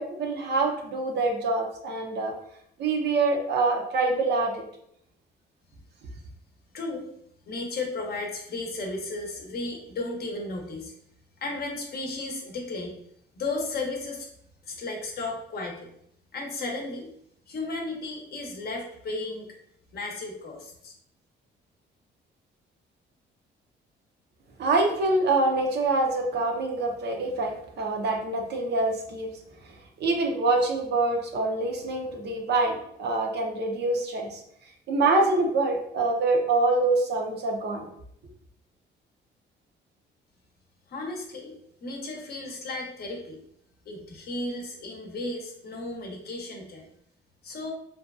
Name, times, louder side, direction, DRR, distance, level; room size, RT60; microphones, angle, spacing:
voice 1, 0.0-2.3 2.8-4.6 24.6-29.3 30.0-34.4 34.9-37.9, right 2 dB, 60° right, 1 dB, 0.6 m, -25 dB
voice 2, 6.7-7.1 7.5-10.9 11.4-13.0 13.3-14.3 14.6-15.9 16.3-17.1 17.5-19.5 19.9-20.9 40.9-43.4 43.9-46.9 47.4-47.7, left 2 dB, 55° left, 1 dB, 0.6 m, -34 dB
2.7 x 2.2 x 2.3 m, 0.72 s
cardioid pair, 90°, 20 cm